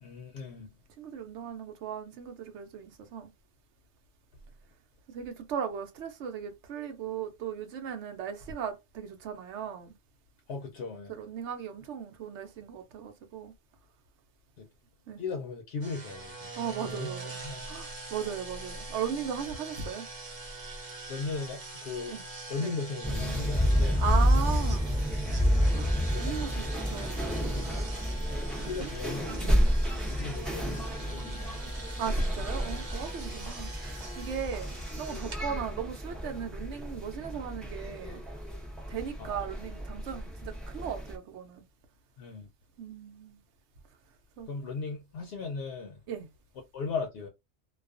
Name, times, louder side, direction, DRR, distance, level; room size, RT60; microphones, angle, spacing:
voice 1, 0.0-0.7 10.5-11.1 14.6-14.7 15.2-16.5 16.8-17.1 17.4-17.6 21.1-22.2 22.5-24.0 26.0-26.3 27.5-27.9 28.6-29.3 30.1-31.6 39.2-39.3 42.2-42.5 44.5-46.0 46.7-47.3, left 4 dB, 70° left, 0.8 m, -37 dB
voice 2, 1.0-3.3 5.1-9.9 11.1-13.5 15.1-15.2 16.6-17.4 17.7-20.1 22.1-22.2 22.6-22.7 24.0-24.9 25.7-25.9 26.2-27.2 28.8-29.0 29.4-29.6 32.0-33.7 34.2-38.2 38.9-41.6 42.8-43.4 44.4-44.5 46.1-46.3, right 7 dB, 85° right, 0.9 m, -37 dB
sound 1, 15.8-35.4, right 3 dB, 35° right, 0.7 m, -43 dB
sound 2, 23.0-41.2, equal, ahead, 0.4 m, -30 dB
2.3 x 2.3 x 2.4 m
omnidirectional pair, 1.2 m